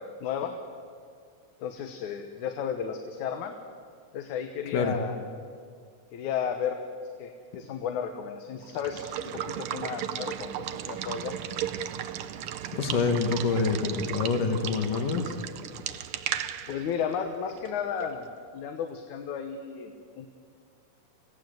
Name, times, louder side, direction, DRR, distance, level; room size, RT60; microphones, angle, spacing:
voice 1, 0.2-0.6 1.6-3.6 4.1-5.2 6.1-6.8 7.2-11.3 16.7-20.3, left 7 dB, 75° left, 5 dB, 2.5 m, -33 dB
Water / Water tap faucet / Liquid, 8.6-18.3, right 10 dB, 85° right, 1.2 m, -35 dB
voice 2, 12.7-15.4, left 4 dB, 90° left, 5 dB, 3.4 m, -26 dB
27.0 x 17.0 x 7.8 m, 2.1 s
omnidirectional pair, 3.6 m